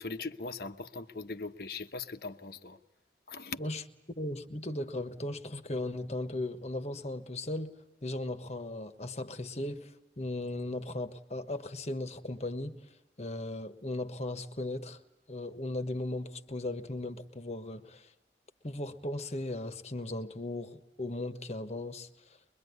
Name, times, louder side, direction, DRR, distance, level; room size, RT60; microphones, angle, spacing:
voice 1, 0.0-2.8 3.3-3.6, left 4 dB, 60° left, 1.1 m, -40 dB
voice 2, 4.1-7.7 8.0-12.8 13.2-15.0 15.3-18.1 18.6-22.1, left 2 dB, 40° left, 1.3 m, -37 dB
23.0 x 22.5 x 9.6 m
head